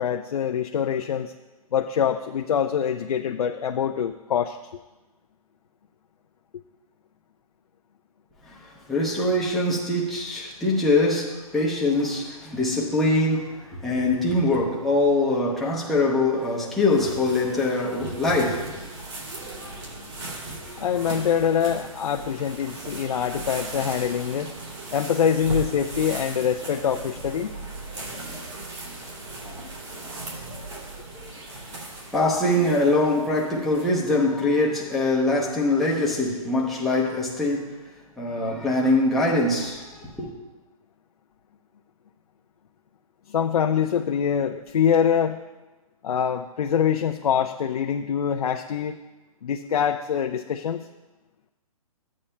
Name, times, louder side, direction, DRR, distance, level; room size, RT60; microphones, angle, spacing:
voice 1, 0.0-1.3 1.7-4.6 20.8-24.5 24.9-27.5 43.3-45.4 46.0-49.0 49.4-50.8, left 8 dB, 75° left, 0.5 m, -24 dB
voice 2, 8.5-18.8 19.4-19.8 20.5-20.8 21.1-21.2 31.2-31.8 32.1-37.8 38.2-40.3, left 2 dB, ahead, 0.7 m, -23 dB
sound 1, 16.4-34.2, right 2 dB, 45° right, 2.9 m, -38 dB
14.0 x 8.5 x 2.2 m
hypercardioid pair, 165°, 19 cm